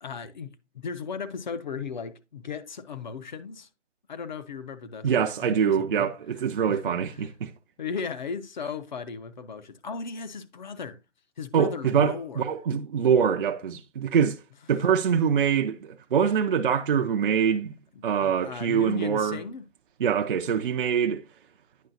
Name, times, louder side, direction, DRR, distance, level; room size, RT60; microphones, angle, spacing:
voice 1, 0.0-3.7 4.1-5.1 5.5-6.1 6.7-7.3 7.8-11.0 11.4-12.5 13.2-13.3 17.9-19.6, left 5 dB, 40° left, 0.5 m, -36 dB
voice 2, 5.0-7.5 11.5-14.4 14.7-17.7 18.0-19.4 20.0-21.2, right 7 dB, 50° right, 0.5 m, -24 dB
9.2 x 5.4 x 2.5 m
hypercardioid pair, 155°, 36 cm